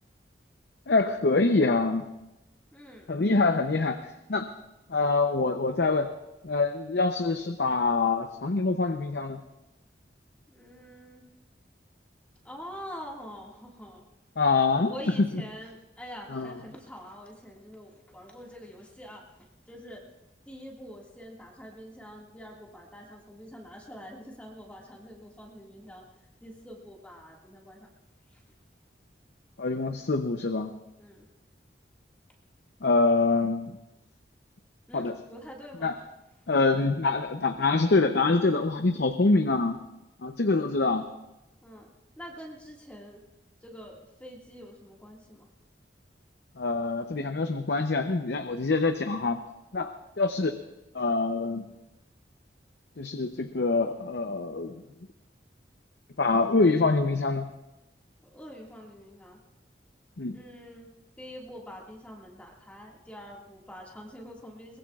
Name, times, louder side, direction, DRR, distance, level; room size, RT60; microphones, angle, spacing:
voice 1, 0.9-2.1 3.1-4.5 4.9-6.1 6.4-9.4 14.4-14.9 16.3-16.5 29.6-30.7 32.8-33.7 34.9-35.1 35.8-35.9 36.5-39.8 40.2-41.1 46.6-49.4 49.7-50.5 50.9-51.6 53.0-54.7 56.2-57.5 60.2-60.4, left 3 dB, 70° left, 7 dB, 0.7 m, -25 dB
voice 2, 2.7-3.2 10.5-11.3 12.4-14.1 14.9-20.0 20.5-26.0 26.4-27.9 28.3-28.4 31.0-31.3 34.9-36.0 41.6-41.9 42.2-43.2 43.6-45.5 58.3-59.4 60.3-60.9 61.2-64.8, equal, 10° left, -2 dB, 1.9 m, -45 dB
22.5 x 20.5 x 2.4 m, 0.96 s
head